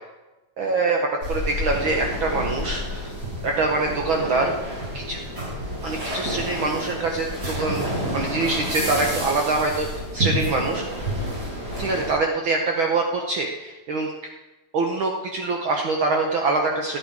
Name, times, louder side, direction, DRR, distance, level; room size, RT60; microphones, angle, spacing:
voice 1, 0.6-1.0 1.3-3.1 3.4-4.5 4.9-5.2 5.8-7.8 8.1-9.9 10.1-11.1 11.8-14.1 14.7-17.0, right 3 dB, 85° right, 2 dB, 1.1 m, -24 dB
sound 1, 1.2-12.1, equal, 25° right, 4.5 m, -29 dB
13.5 x 8.4 x 4.6 m, 1.1 s
omnidirectional pair, 3.6 m